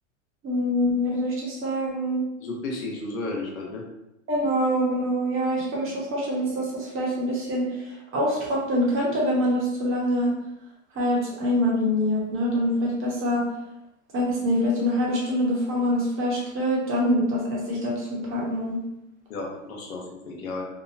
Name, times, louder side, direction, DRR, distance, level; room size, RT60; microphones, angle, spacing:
voice 1, 0.4-2.2 4.3-10.3 10.9-13.5 14.1-18.8, equal, 30° right, -4 dB, 1.0 m, -25 dB
voice 2, 2.4-3.8 19.3-20.6, left 2 dB, 80° left, 0 dB, 0.8 m, -33 dB
2.9 x 2.2 x 2.5 m, 0.90 s
hypercardioid pair, 105°, 41 cm